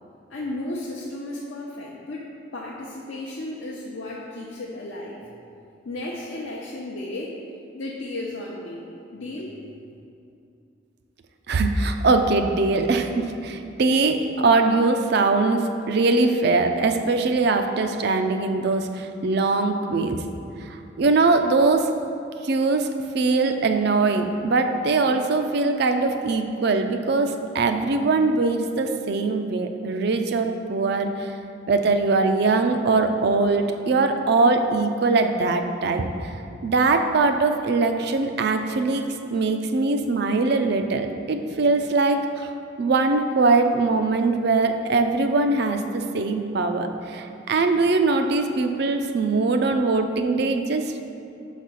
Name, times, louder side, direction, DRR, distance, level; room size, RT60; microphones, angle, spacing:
voice 1, 0.3-5.3 5.8-7.4 7.7-8.9 9.1-9.6, left 2 dB, 65° left, -5 dB, 0.7 m, -34 dB
voice 2, 11.5-20.2 20.6-22.0 22.4-31.3 31.7-36.3 36.6-42.5 42.8-50.9, right 3 dB, 55° right, 6 dB, 0.4 m, -22 dB
5.8 x 4.1 x 6.2 m, 2.6 s
head